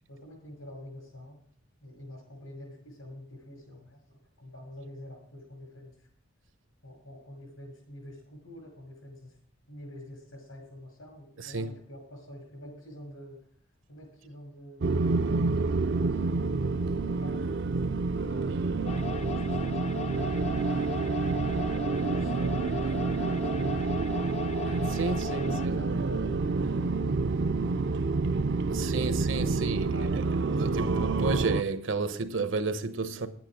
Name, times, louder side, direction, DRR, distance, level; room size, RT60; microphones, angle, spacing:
voice 1, 0.1-1.4 1.8-6.1 6.8-9.4 9.7-13.4 13.9-15.5 16.1-18.5 19.2-21.6 22.0-24.0 25.1-30.4, equal, 90° left, 6.3 m, -46 dB
sound 1, 14.8-31.6, right 3 dB, 55° right, 0.5 m, -28 dB
sound 2, 18.9-25.7, left 7 dB, 30° left, 0.4 m, -39 dB
voice 2, 24.9-25.7 28.7-30.2 30.5-33.3, right 3 dB, 75° right, 1.0 m, -32 dB
10.5 x 9.1 x 6.2 m
head